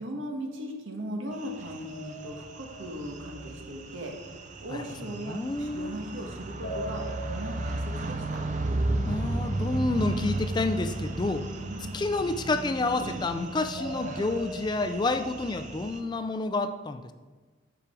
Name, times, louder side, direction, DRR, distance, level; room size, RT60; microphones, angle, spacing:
voice 1, 0.0-4.1 4.6-8.2 11.7-11.9, equal, 90° right, 1 dB, 1.3 m, -38 dB
sound 1, 1.4-16.0, right 2 dB, 40° right, 0.5 m, -34 dB
sound 2, 1.8-3.9 6.6-9.5 13.7-16.0, right 1 dB, 50° left, 0.7 m, -42 dB
voice 2, 5.2-6.0 9.0-11.5 11.8-17.1, left 2 dB, 25° left, 9 dB, 0.3 m, -29 dB
7.3 x 5.0 x 4.9 m, 1.3 s
head